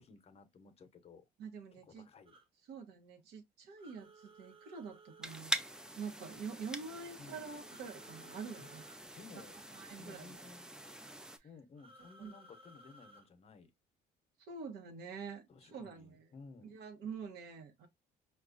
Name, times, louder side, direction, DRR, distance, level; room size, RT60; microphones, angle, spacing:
voice 1, 0.0-1.2 1.7-2.3 7.2-7.4 8.6-8.7 9.1-9.5 9.9-10.7 11.4-13.7 15.5-16.7, left 4 dB, 40° left, 0.7 m, -56 dB
voice 2, 1.4-2.1 2.7-5.5 5.9-8.8 9.5-10.4 11.3-11.5 12.2-12.3 14.4-16.3 16.6-17.9, right 5 dB, 85° right, 0.9 m, -46 dB
sound 1, 2.3-2.5 3.8-5.5 7.7-9.0 11.8-13.3, right 2 dB, 30° right, 0.8 m, -59 dB
sound 2, 5.2-11.4, right 1 dB, 5° right, 0.3 m, -44 dB
4.5 x 2.3 x 2.4 m
cardioid pair, 110°, 17 cm